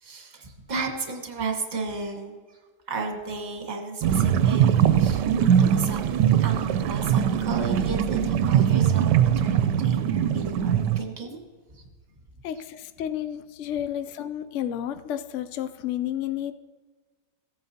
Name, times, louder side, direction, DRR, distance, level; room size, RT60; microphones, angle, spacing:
voice 1, 0.0-2.4 2.9-4.7 5.0-5.2 5.6-6.1 6.4-9.1 9.4-11.4 11.7-11.8, right 4 dB, 30° right, 3 dB, 1.3 m, -33 dB
sound 1, 4.0-11.0, right 9 dB, 80° right, 1.2 m, -21 dB
voice 2, 12.4-16.5, left 11 dB, 85° left, 10 dB, 0.6 m, -31 dB
16.0 x 8.7 x 2.8 m, 1.4 s
omnidirectional pair, 1.9 m